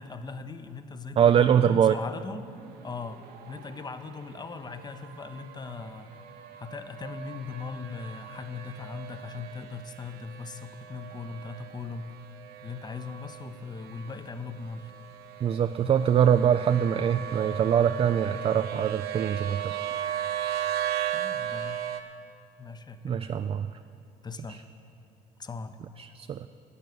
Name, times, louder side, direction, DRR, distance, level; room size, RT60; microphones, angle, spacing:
voice 1, 0.0-2.5 2.8-6.3 6.6-12.1 12.6-14.9 21.1-21.9 22.6-23.2 24.2-24.6 25.4-25.8, left 4 dB, 25° left, 10 dB, 0.8 m, -39 dB
voice 2, 1.2-2.0 15.4-19.8 23.0-23.7 24.5-24.6 26.0-26.5, right 8 dB, 35° right, 9 dB, 0.4 m, -23 dB
sound 1, 2.3-22.0, right 10 dB, 70° right, 0.9 m, -37 dB
12.5 x 9.0 x 6.9 m, 2.7 s
supercardioid pair, 80°, 17 cm